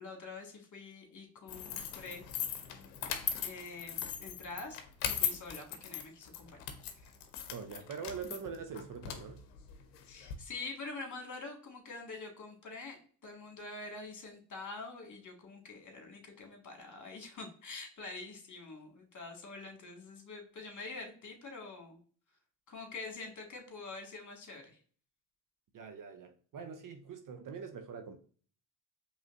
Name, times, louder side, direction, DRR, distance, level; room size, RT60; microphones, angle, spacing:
voice 1, 0.0-2.2 3.4-6.7 7.0-7.1 10.1-22.0 22.7-24.7, left 3 dB, 35° left, 1.8 m, -46 dB
sound 1, 1.5-10.3, left 9 dB, 85° left, 0.8 m, -39 dB
voice 2, 7.5-9.4 25.7-28.2, right 6 dB, 40° right, 0.7 m, -43 dB
5.0 x 3.3 x 2.5 m
supercardioid pair, 70°, 49 cm